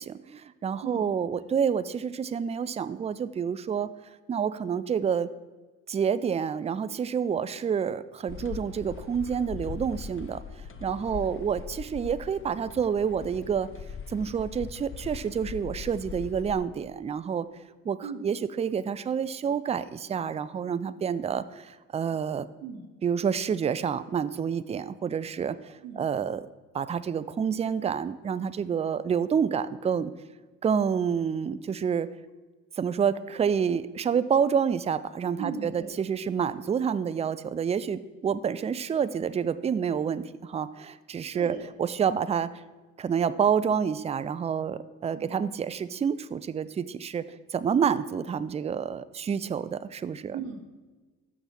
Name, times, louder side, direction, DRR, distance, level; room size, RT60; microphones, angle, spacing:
voice 1, 0.0-3.9 4.3-5.3 5.9-10.4 10.8-13.7 14.1-17.5 17.8-22.5 23.0-26.5 26.7-30.1 30.6-32.1 32.8-42.5 43.0-50.4, right 7 dB, 20° right, 15 dB, 0.3 m, -28 dB
sound 1, 8.3-16.6, left 6 dB, 35° left, 0.7 m, -41 dB
voice 2, 35.3-35.9 41.3-41.7 45.1-45.4 50.3-50.6, right 6 dB, 85° right, 3 dB, 0.9 m, -37 dB
6.1 x 6.0 x 5.2 m, 1.3 s
hypercardioid pair, 45°, 37 cm